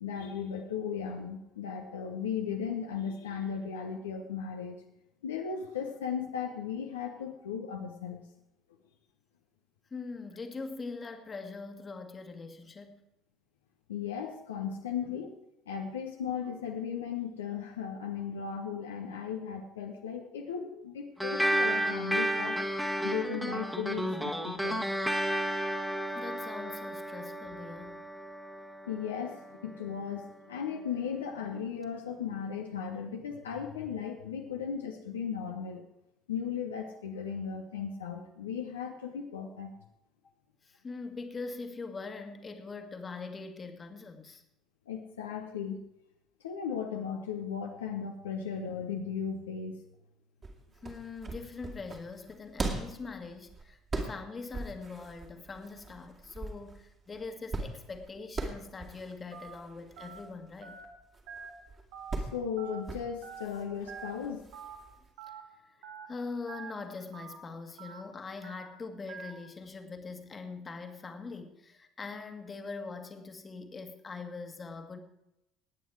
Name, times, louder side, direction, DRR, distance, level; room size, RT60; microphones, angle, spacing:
voice 1, 0.0-4.8 5.2-8.2 13.9-15.3 15.7-22.6 23.0-24.9 28.9-35.8 36.3-39.7 44.9-45.8 46.4-49.8 62.2-64.5, left 7 dB, 75° left, 3 dB, 1.0 m, -36 dB
voice 2, 9.9-13.0 26.1-28.1 40.6-44.4 50.8-60.8 66.1-75.0, left 4 dB, 30° left, 6 dB, 1.7 m, -42 dB
sound 1, 21.2-30.0, right 1 dB, 5° right, 1.6 m, -32 dB
sound 2, 50.4-65.1, right 3 dB, 30° right, 2.4 m, -41 dB
Telephone, 59.3-59.5 60.0-60.2 60.6-60.8 61.3-61.5 61.9-62.2 62.6-62.8 63.2-63.5 63.9-64.1 64.5-64.8 65.2-65.4 65.8-66.1 66.5-66.7 67.1-67.4 67.8-68.0 68.4-68.7 69.1-69.3, right 6 dB, 60° right, 1.8 m, -45 dB
19.0 x 9.1 x 4.8 m, 0.88 s
figure-of-eight pair, 60°, 0 cm